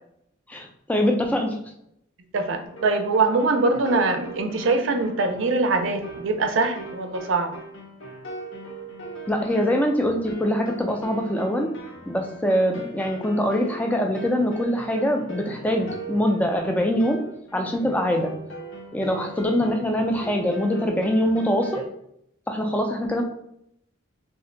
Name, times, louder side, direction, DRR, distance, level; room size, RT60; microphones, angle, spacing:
voice 1, 0.5-1.6 9.3-11.7 12.1-17.2 17.5-18.3 18.9-21.8 22.5-23.2, equal, 5° left, 2 dB, 0.3 m, -23 dB
voice 2, 2.3-7.6, right 3 dB, 65° right, 6 dB, 0.4 m, -23 dB
sound 1, 2.6-21.9, right 2 dB, 70° left, 0.7 m, -40 dB
2.5 x 2.1 x 3.7 m, 0.75 s
head